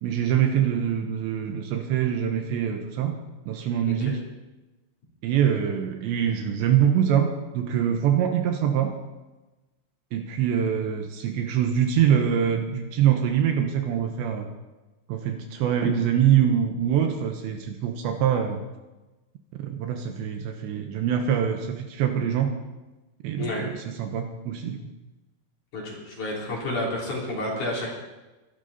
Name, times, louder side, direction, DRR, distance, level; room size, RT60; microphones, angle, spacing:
voice 1, 0.0-3.2 3.5-4.2 5.2-9.0 10.1-14.5 15.1-18.6 19.6-22.6 23.2-24.8, right 9 dB, 75° right, 5 dB, 3.1 m, -24 dB
voice 2, 25.7-27.9, left 1 dB, 45° left, -3 dB, 4.4 m, -30 dB
23.0 x 11.5 x 4.1 m, 1.1 s
omnidirectional pair, 5.6 m